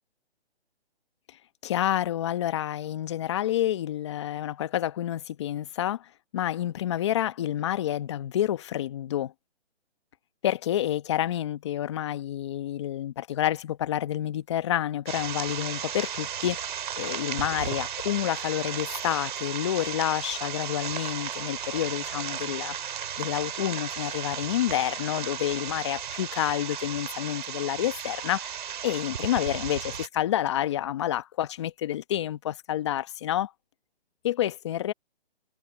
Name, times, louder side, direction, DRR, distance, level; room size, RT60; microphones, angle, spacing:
voice 1, 1.6-6.1 6.3-9.3 10.4-16.6 17.0-22.8 23.2-28.6 28.8-33.5 34.2-34.9, left 12 dB, 25° left, 1.1 m, -29 dB
sound 1, 15.1-30.1, right 9 dB, 45° right, 3.3 m, -35 dB
hypercardioid pair, 160°, 33 cm